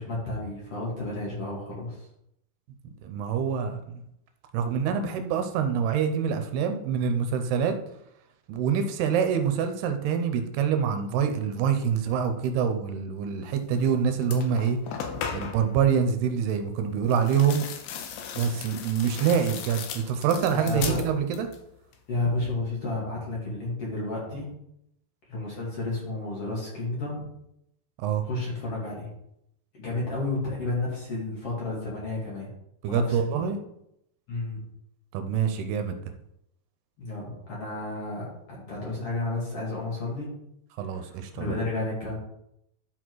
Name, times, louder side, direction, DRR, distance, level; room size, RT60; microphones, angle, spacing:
voice 1, 0.0-2.1 20.5-21.0 22.1-24.5 25.3-27.3 28.2-29.1 29.7-32.5 32.9-33.5 34.3-34.6 37.0-40.3 40.9-42.2, left 2 dB, 45° left, -4 dB, 2.6 m, -32 dB
voice 2, 3.0-4.0 4.5-7.8 8.5-14.8 15.3-17.6 18.4-21.5 28.0-28.2 32.8-33.6 35.1-36.0 40.8-41.6, right 7 dB, 80° right, 7 dB, 2.7 m, -26 dB
sound 1, 13.8-13.9 14.2-15.7 17.1-21.6 21.9-22.5, left 6 dB, 90° left, 3.0 m, -37 dB
11.0 x 4.3 x 4.6 m, 0.78 s
omnidirectional pair, 4.6 m